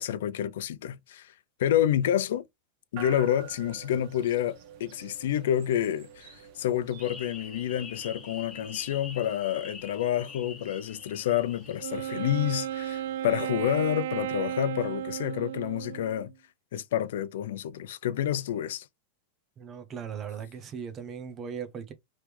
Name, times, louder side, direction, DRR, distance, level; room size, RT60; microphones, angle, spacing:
voice 1, 0.0-1.3 1.6-2.4 2.9-16.3 16.7-18.9, left 11 dB, 70° left, 0.5 m, -29 dB
sound 1, 3.0-16.0, right 8 dB, 40° right, 1.0 m, -51 dB
sound 2, 7.0-12.2, left 5 dB, 10° left, 0.8 m, -45 dB
Wind instrument woodwind instrument, 11.8-16.3, right 11 dB, 65° right, 0.4 m, -34 dB
voice 2, 19.6-21.9, right 7 dB, 20° right, 0.7 m, -38 dB
5.1 x 3.1 x 3.2 m
supercardioid pair, 175°, 0 cm